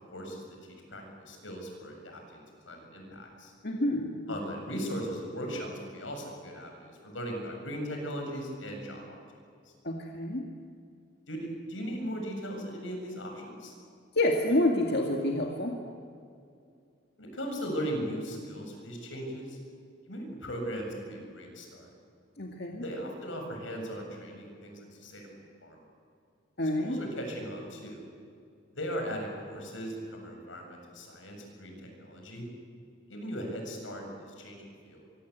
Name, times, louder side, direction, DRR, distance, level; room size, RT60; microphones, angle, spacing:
voice 1, 0.1-3.5 4.3-9.2 11.3-13.7 17.2-19.6 20.1-21.9 22.8-25.8 26.8-28.0 28.7-32.5 33.1-35.0, equal, 85° left, 2 dB, 7.7 m, -38 dB
voice 2, 3.6-4.3 9.8-10.4 14.2-15.8 22.4-22.8 26.6-27.0, left 1 dB, 55° left, 1 dB, 2.2 m, -28 dB
26.0 x 24.0 x 8.2 m, 2.4 s
head